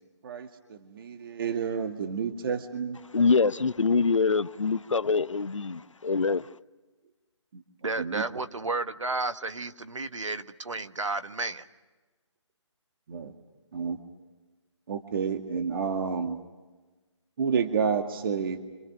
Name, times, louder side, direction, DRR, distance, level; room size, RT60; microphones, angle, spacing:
voice 1, 0.2-3.0 7.5-7.6 8.0-8.2 13.1-13.3 13.7-14.0 14.9-16.4 17.4-18.6, right 6 dB, 45° right, 2.1 m, -30 dB
voice 2, 3.1-6.5, left 4 dB, 85° left, 0.8 m, -24 dB
voice 3, 7.8-11.6, right 3 dB, 85° right, 1.5 m, -32 dB
29.0 x 27.0 x 6.1 m
figure-of-eight pair, 150°, 16 cm